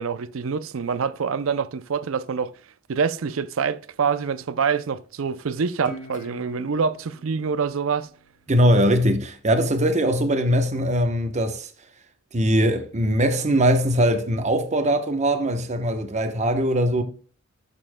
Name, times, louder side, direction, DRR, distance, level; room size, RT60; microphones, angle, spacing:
voice 1, 0.0-2.5 2.9-8.1, right 6 dB, 70° right, 0.5 m, -26 dB
Guitar, 5.8-9.1, right 1 dB, 40° left, 1.6 m, -44 dB
voice 2, 8.5-11.7 12.3-17.0, equal, 35° right, 0.9 m, -21 dB
11.0 x 6.9 x 2.2 m
head